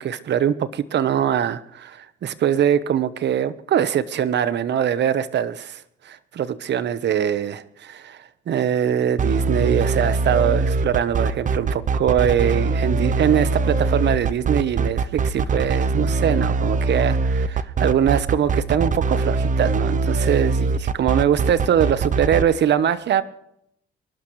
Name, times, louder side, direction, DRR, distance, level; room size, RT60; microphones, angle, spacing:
voice 1, 0.0-23.2, right 9 dB, 60° right, 13 dB, 1.1 m, -22 dB
sound 1, 9.2-22.4, right 4 dB, 40° right, 0.8 m, -22 dB
25.0 x 12.0 x 3.3 m, 0.73 s
cardioid pair, 90°, 20 cm